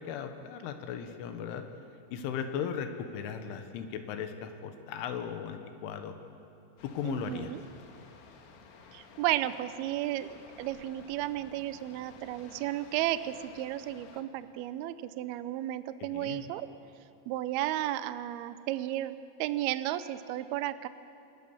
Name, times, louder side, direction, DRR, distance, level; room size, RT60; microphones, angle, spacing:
voice 1, 0.0-1.7 2.1-6.2 6.8-7.5 16.1-16.4, left 7 dB, 85° left, 7 dB, 3.7 m, -37 dB
sound 1, 6.8-14.2, left 5 dB, 70° left, 3.9 m, -54 dB
voice 2, 7.0-7.6 8.9-10.3 10.6-16.7 17.3-20.9, right 14 dB, 80° right, 12 dB, 2.3 m, -33 dB
28.0 x 21.0 x 7.2 m, 2.7 s
omnidirectional pair, 5.4 m